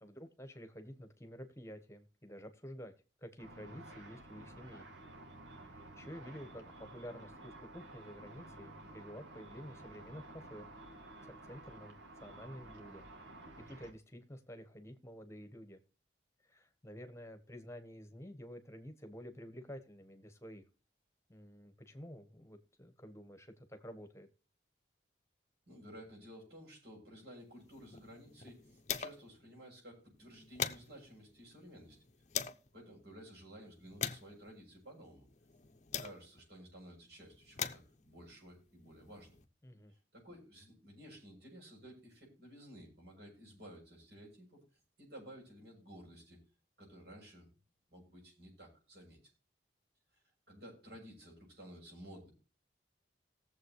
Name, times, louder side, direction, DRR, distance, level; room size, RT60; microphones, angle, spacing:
voice 1, 0.0-2.9 3.2-4.8 5.5-10.7 11.2-13.1 13.7-15.8 16.4-20.6 21.3-24.3 39.6-39.9, equal, 15° left, 7 dB, 1.3 m, -50 dB
Car / Traffic noise roadway noise / Engine, 3.4-13.9, right 2 dB, 80° right, 2.4 m, -53 dB
voice 2, 25.7-32.0 32.7-35.3 36.0-39.4 39.9-44.6 45.0-46.4 46.8-47.5 47.9-49.3 50.1-52.3, equal, 60° right, -1 dB, 7.9 m, -54 dB
sound 1, 27.6-29.4 29.7-29.8 30.2-32.7 33.3-36.5 37.2-39.4, left 8 dB, 40° left, 0.8 m, -43 dB
19.0 x 7.5 x 3.2 m, 0.35 s
head